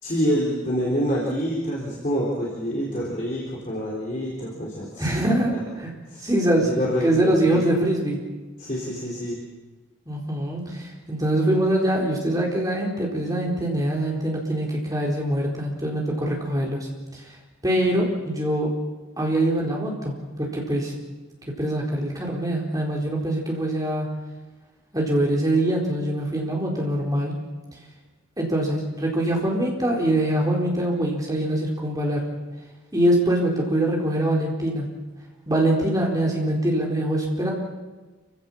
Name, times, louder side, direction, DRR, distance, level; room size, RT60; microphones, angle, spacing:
voice 1, 0.0-5.1 6.1-6.3 6.6-7.6 8.6-9.4, equal, 40° left, -4 dB, 3.9 m, -26 dB
voice 2, 5.0-5.9 6.2-6.7 7.0-8.2 10.1-17.2 17.6-18.7 19.2-20.9 21.6-24.1 24.9-27.3 28.4-32.2 32.9-34.9 35.5-37.5, right 1 dB, 20° right, -2 dB, 4.3 m, -23 dB
27.5 x 16.0 x 7.3 m, 1.2 s
head